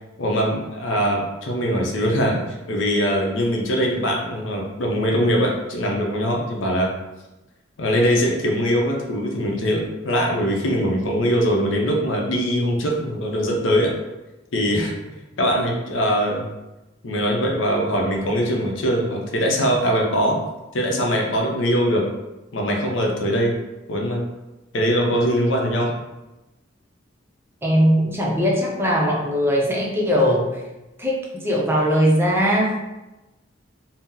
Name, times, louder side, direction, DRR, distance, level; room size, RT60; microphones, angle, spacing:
voice 1, 0.2-2.4 2.7-6.9 7.8-13.9 14.5-14.9 15.4-16.5 17.0-20.4 20.7-22.1 22.5-23.6 23.9-24.2 24.7-25.9, equal, 80° left, 0 dB, 0.6 m, -22 dB
voice 2, 27.6-30.6 31.0-32.8, equal, 10° right, -3 dB, 0.5 m, -20 dB
2.8 x 2.0 x 3.6 m, 1.0 s
head